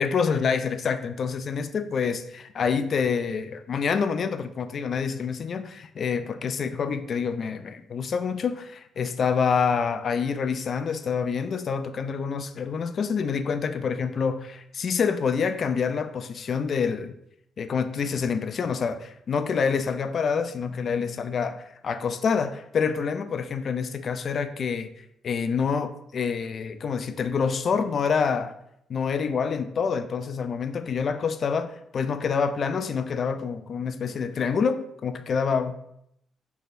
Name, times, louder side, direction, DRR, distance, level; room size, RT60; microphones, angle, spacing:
voice 1, 0.0-17.1 17.6-24.9 25.2-28.5 28.9-35.7, left 6 dB, 50° left, 10 dB, 0.4 m, -27 dB
4.5 x 3.2 x 2.5 m, 0.76 s
cardioid pair, 90°, 0 cm